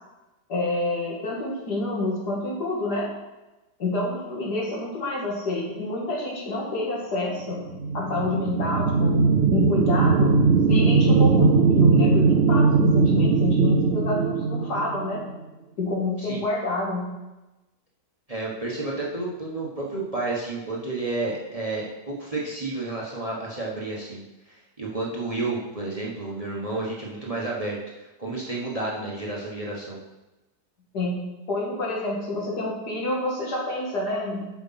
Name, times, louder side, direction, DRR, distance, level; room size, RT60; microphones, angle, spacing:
voice 1, 0.5-3.1 3.8-9.2 9.5-15.3 15.8-17.1 30.9-34.5, left 2 dB, 70° left, -2 dB, 2.5 m, -28 dB
sound 1, 7.7-15.4, right 4 dB, 80° right, 0.5 m, -19 dB
voice 2, 18.3-30.0, right 2 dB, 20° right, -3 dB, 1.3 m, -31 dB
7.9 x 6.0 x 5.8 m, 1.0 s
omnidirectional pair, 1.8 m